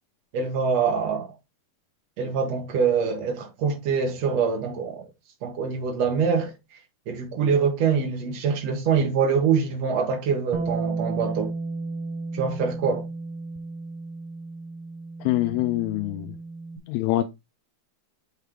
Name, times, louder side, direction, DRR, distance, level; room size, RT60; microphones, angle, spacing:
voice 1, 0.3-1.3 2.2-5.1 5.4-6.5 7.1-11.5 12.3-13.1, right 6 dB, 55° right, 2.2 m, -24 dB
Bass guitar, 10.5-16.8, right 3 dB, 85° right, 3.3 m, -33 dB
voice 2, 15.2-16.3 16.9-17.3, left 15 dB, 85° left, 2.5 m, -25 dB
6.5 x 5.7 x 3.5 m
omnidirectional pair, 4.6 m